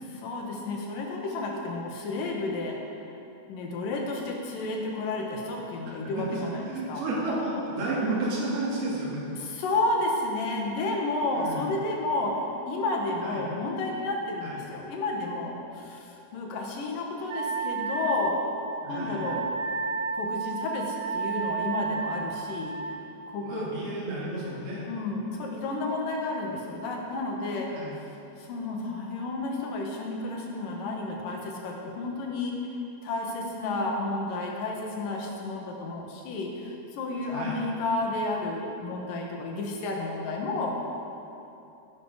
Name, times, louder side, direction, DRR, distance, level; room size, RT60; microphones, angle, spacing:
voice 1, 0.2-2.8 3.5-7.0 9.4-12.4 12.7-18.4 18.9-19.5 20.1-22.8 23.3-23.7 24.9-27.8 28.4-32.6 33.0-40.7, left 2 dB, 65° left, 0 dB, 3.0 m, -31 dB
voice 2, 6.6-9.2 11.3-11.7 13.2-13.5 14.4-14.6 18.8-19.3 23.4-24.8 27.7-28.0 37.3-37.6, right 2 dB, 80° right, -6 dB, 4.5 m, -32 dB
Wind instrument woodwind instrument, 17.3-22.9, right 5 dB, 65° right, 2.0 m, -32 dB
14.0 x 10.5 x 4.9 m, 2.8 s
omnidirectional pair, 4.4 m